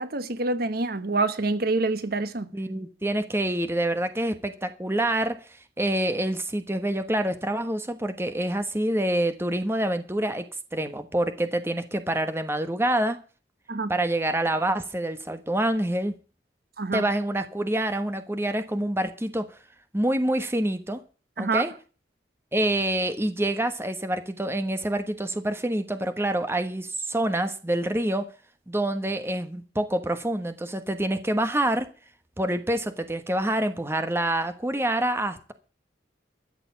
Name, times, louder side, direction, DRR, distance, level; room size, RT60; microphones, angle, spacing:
voice 1, 0.0-2.5 13.7-13.9 16.8-17.0 21.4-21.6, right 3 dB, 55° right, 1.0 m, -26 dB
voice 2, 2.5-5.4 5.8-10.5 10.7-13.2 13.9-16.1 16.9-19.5 19.9-21.0 21.4-21.7 22.5-28.3 28.7-31.9 32.4-35.5, right 1 dB, 15° right, 1.2 m, -26 dB
13.5 x 6.8 x 8.0 m
head